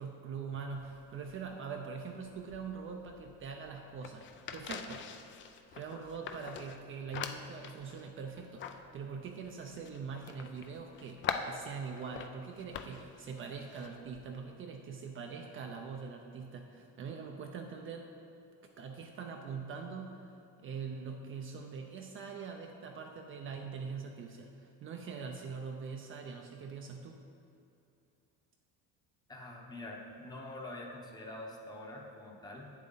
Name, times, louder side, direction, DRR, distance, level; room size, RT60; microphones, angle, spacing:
voice 1, 0.0-5.1 5.4-18.1 18.8-20.3 20.6-27.2, right 5 dB, 40° right, 3 dB, 0.5 m, -43 dB
sound 1, 0.7-14.5, left 7 dB, 35° left, 0.4 m, -45 dB
voice 2, 29.3-32.7, left 1 dB, 10° left, -1 dB, 0.8 m, -45 dB
8.7 x 7.3 x 4.0 m, 2.7 s
cardioid pair, 160°, 34 cm